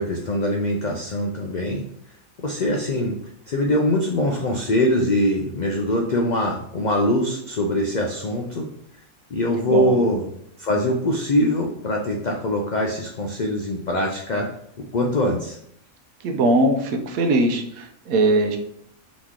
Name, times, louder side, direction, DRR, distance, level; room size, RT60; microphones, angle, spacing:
voice 1, 0.0-1.8 2.4-3.2 3.5-8.7 9.3-10.2 10.6-14.5 14.9-15.6, left 1 dB, 85° left, 1 dB, 0.4 m, -23 dB
voice 2, 9.6-9.9 16.2-18.6, right 2 dB, 85° right, 4 dB, 1.1 m, -20 dB
4.0 x 3.0 x 3.5 m, 0.71 s
omnidirectional pair, 1.4 m